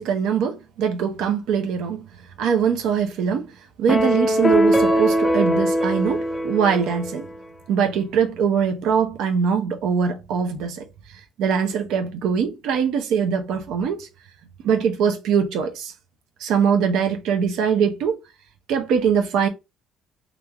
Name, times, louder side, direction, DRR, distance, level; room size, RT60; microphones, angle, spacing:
voice 1, 0.0-2.1 2.4-3.5 3.8-7.3 7.7-10.9 11.4-14.1 14.6-15.9 16.4-18.2 18.7-19.5, right 7 dB, 70° right, 0.6 m, -22 dB
sound 1, 3.9-7.4, equal, 5° left, 0.4 m, -21 dB
3.1 x 2.4 x 2.2 m
cardioid pair, 175°, 0 cm